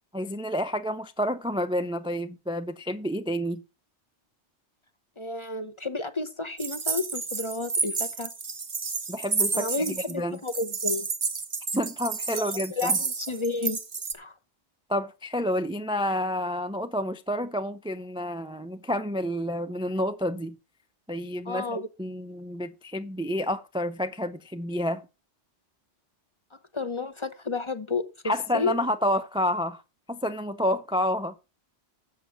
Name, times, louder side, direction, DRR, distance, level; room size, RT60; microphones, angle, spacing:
voice 1, 0.1-3.6 9.1-10.4 11.7-13.0 14.9-20.6 21.1-25.0 28.2-29.8 30.1-31.3, equal, 5° right, 0.4 m, -29 dB
voice 2, 5.2-8.3 9.5-11.1 12.3-13.8 14.1-14.3 21.5-21.9 26.7-28.7, left 3 dB, 30° left, 0.7 m, -31 dB
sound 1, 6.6-10.1 10.5-14.1, right 4 dB, 35° right, 0.9 m, -30 dB
7.5 x 6.6 x 7.2 m
omnidirectional pair, 1.2 m